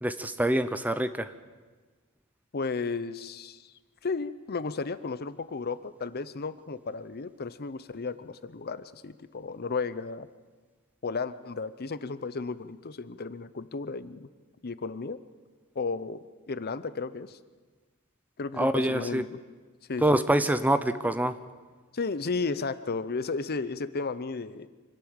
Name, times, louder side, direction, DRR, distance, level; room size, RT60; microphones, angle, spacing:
voice 1, 0.0-1.3 18.6-19.2 20.0-21.4, right 1 dB, 10° right, 11 dB, 0.7 m, -25 dB
voice 2, 2.5-3.7 4.0-10.3 11.0-14.3 14.6-15.2 15.8-16.2 16.5-17.4 18.4-19.4 19.9-20.2 21.9-24.7, left 4 dB, 45° left, 14 dB, 0.7 m, -34 dB
26.0 x 12.0 x 8.9 m, 1.4 s
head